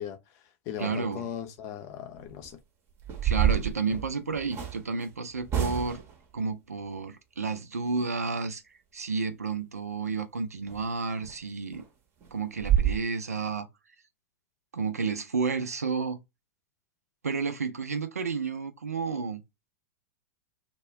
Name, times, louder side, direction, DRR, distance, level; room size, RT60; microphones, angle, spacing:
voice 1, 0.0-2.6, left 9 dB, 40° left, 0.6 m, -38 dB
voice 2, 0.8-1.2 3.2-6.0 6.3-8.6 8.9-11.8 12.3-13.7 14.7-16.2 17.2-19.4, right 4 dB, 85° right, 0.5 m, -31 dB
sound 1, 2.2-2.5 3.0-4.8 5.5-6.1 10.7-10.8 11.2-11.3 11.7-11.8 12.2-12.3 12.6-12.9, right 9 dB, 30° right, 0.7 m, -27 dB
2.3 x 2.1 x 2.9 m
figure-of-eight pair, 95°, 8 cm